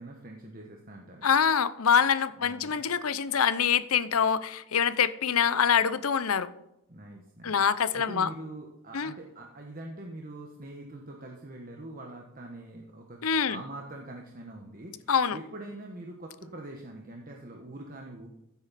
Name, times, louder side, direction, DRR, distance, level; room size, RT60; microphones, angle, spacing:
voice 1, 0.0-1.3 2.4-2.8 6.9-7.6 7.9-18.3, right 2 dB, 40° right, 1 dB, 1.3 m, -44 dB
voice 2, 1.2-6.5 7.4-8.3 8.9-9.1 13.2-13.6 15.1-15.4, left 7 dB, 80° left, 14 dB, 0.7 m, -25 dB
15.0 x 8.3 x 4.2 m, 0.87 s
head